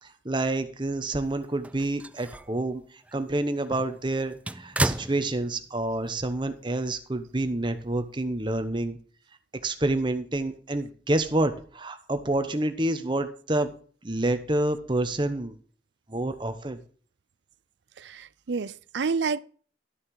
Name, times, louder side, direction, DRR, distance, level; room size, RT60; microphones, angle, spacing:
voice 1, 0.0-2.8 3.1-9.0 9.6-13.7 14.0-15.6 16.1-16.8, right 2 dB, 25° right, 1.0 m, -28 dB
sound 1, 1.4-2.6 3.0-3.2 3.6-5.8 6.1-6.2 7.4-7.5, right 1 dB, 10° right, 0.4 m, -33 dB
voice 2, 18.0-19.4, right 5 dB, 90° right, 0.5 m, -29 dB
12.5 x 6.4 x 4.8 m
head